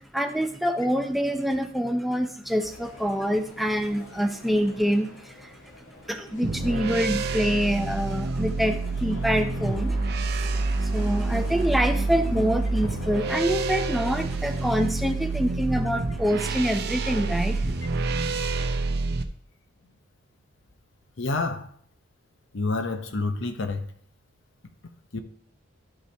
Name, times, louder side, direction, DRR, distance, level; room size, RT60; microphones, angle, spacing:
voice 1, 0.0-5.5 6.1-10.0 10.4-10.5 10.8-17.6, equal, ahead, 0.5 m, -26 dB
sound 1, 2.6-14.7, left 2 dB, 85° left, 1.6 m, -46 dB
sound 2, 6.4-19.2, right 3 dB, 50° right, 0.6 m, -27 dB
voice 2, 21.2-21.7 22.5-23.9 25.1-25.2, left 3 dB, 60° left, 0.8 m, -28 dB
12.0 x 5.5 x 3.4 m
head